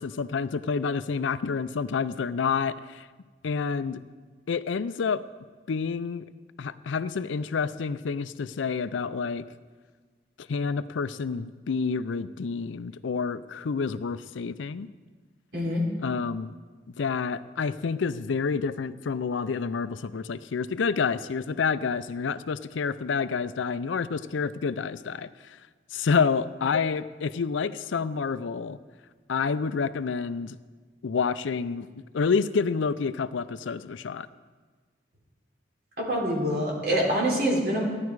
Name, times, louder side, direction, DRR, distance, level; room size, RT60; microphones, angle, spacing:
voice 1, 0.0-3.1 3.4-4.0 4.5-5.2 5.7-6.3 6.6-9.5 10.4-14.9 16.0-16.5 17.0-25.6 25.9-28.8 29.3-30.6 31.0-34.3, left 5 dB, 80° left, 14 dB, 0.4 m, -28 dB
voice 2, 15.5-15.8 36.0-37.8, equal, 55° right, -3 dB, 3.4 m, -25 dB
15.0 x 10.5 x 4.7 m, 1.4 s
head